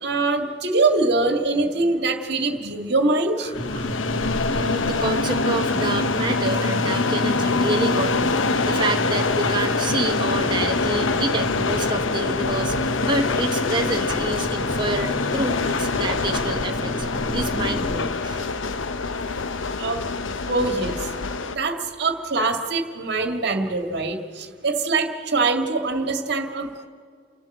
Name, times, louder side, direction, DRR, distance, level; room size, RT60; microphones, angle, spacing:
voice 1, 0.0-3.5 19.8-20.0 20.5-21.1 21.5-26.9, right 3 dB, 60° right, 5 dB, 1.9 m, -23 dB
sound 1, 3.4-18.1, equal, 25° left, 1.2 m, -32 dB
sound 2, 3.5-21.6, left 3 dB, 85° left, 0.8 m, -25 dB
voice 2, 4.5-12.7 13.0-17.1 17.3-18.5, right 2 dB, 25° right, 3 dB, 1.2 m, -28 dB
30.0 x 12.0 x 7.9 m, 2.1 s
head